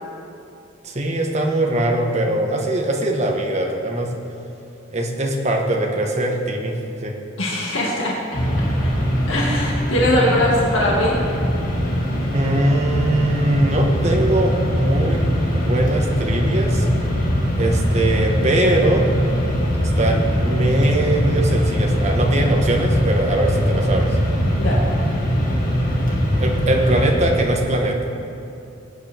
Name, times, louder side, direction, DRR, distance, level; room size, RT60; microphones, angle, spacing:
voice 1, 0.8-4.1 4.9-7.1 12.3-16.9 17.6-19.1 19.8-24.2 26.4-28.0, right 1 dB, 35° right, 0 dB, 1.4 m, -21 dB
voice 2, 7.4-8.2 9.3-11.2 24.6-24.8, left 1 dB, 90° left, -4 dB, 2.0 m, -20 dB
Mechanisms, 8.3-27.8, equal, 45° left, 2.1 m, -21 dB
21.0 x 8.9 x 3.5 m, 2.7 s
head